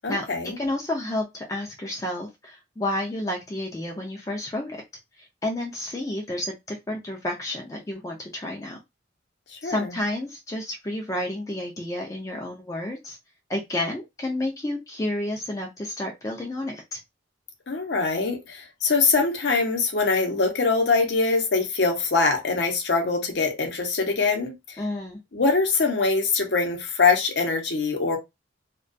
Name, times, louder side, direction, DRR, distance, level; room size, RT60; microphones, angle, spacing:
voice 1, 0.0-0.6 9.5-9.9 17.7-24.8 25.3-28.2, left 4 dB, 60° left, 0.7 m, -23 dB
voice 2, 0.6-4.8 5.2-8.8 9.6-13.2 13.5-17.0 24.8-25.2, left 1 dB, 15° left, 0.4 m, -30 dB
2.2 x 2.2 x 2.5 m
head